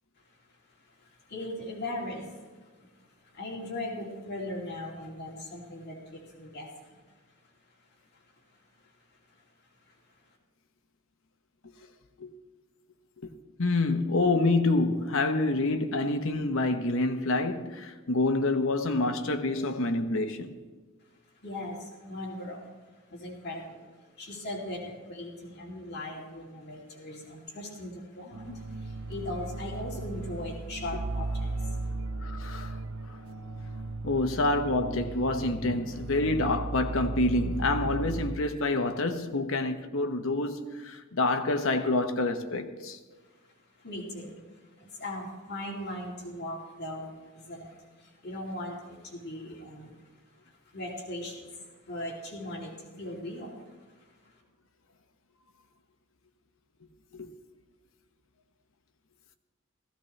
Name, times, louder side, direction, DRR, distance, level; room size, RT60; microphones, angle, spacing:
voice 1, 0.8-2.9 3.2-7.0 8.8-8.9 9.3-9.4 9.8-10.0 21.4-22.7 23.1-23.8 24.2-31.8 43.2-43.4 43.8-50.0 50.6-53.6 54.0-54.1, left 1 dB, 50° left, 2.8 m, -39 dB
voice 2, 13.6-20.5 28.5-28.6 32.2-32.8 34.0-43.0 57.1-57.3, left 2 dB, 65° left, 0.9 m, -27 dB
sound 1, 28.3-38.3, right 2 dB, 70° right, 0.8 m, -36 dB
16.0 x 15.0 x 3.2 m
head